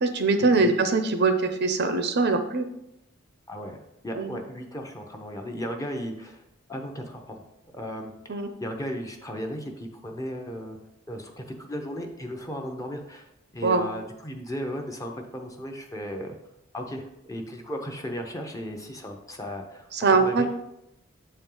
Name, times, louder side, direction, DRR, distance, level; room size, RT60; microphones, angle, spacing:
voice 1, 0.0-2.7 4.2-4.4 8.3-8.5 13.6-13.8 19.9-20.5, right 3 dB, 55° right, 7 dB, 0.6 m, -22 dB
voice 2, 3.5-6.4 6.7-7.4 7.7-10.8 11.1-13.3 13.5-16.4 16.7-20.5, equal, 15° left, 3 dB, 0.7 m, -35 dB
7.5 x 4.4 x 3.8 m, 0.86 s
head